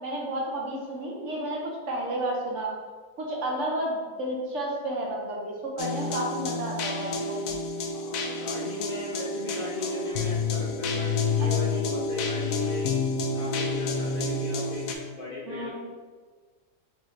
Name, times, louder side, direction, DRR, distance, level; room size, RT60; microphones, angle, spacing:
voice 1, 0.0-2.7 3.2-7.4 11.7-11.8 15.5-15.7, right 1 dB, 60° right, -2 dB, 1.1 m, -31 dB
sound 1, 5.8-14.9, left 3 dB, 75° left, 0.9 m, -29 dB
voice 2, 7.9-12.8 13.3-15.7, left 2 dB, 50° left, -6 dB, 0.7 m, -37 dB
4.0 x 3.1 x 3.8 m, 1.5 s
omnidirectional pair, 1.5 m